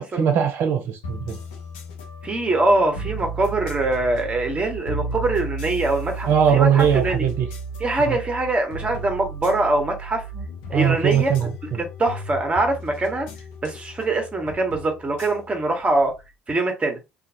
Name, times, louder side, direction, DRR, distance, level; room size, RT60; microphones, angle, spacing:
voice 1, 0.0-1.4 6.3-7.5 8.1-8.2 10.3-10.4 10.7-11.8, right 8 dB, 55° right, 0.8 m, -20 dB
sound 1, 1.0-16.3, right 2 dB, 75° left, 0.6 m, -34 dB
voice 2, 2.2-7.2 7.8-10.2 10.7-11.5 11.8-13.3 13.6-16.1 16.5-17.0, right 2 dB, 25° right, 1.2 m, -23 dB
2.5 x 2.5 x 2.7 m
hypercardioid pair, 60°, 5 cm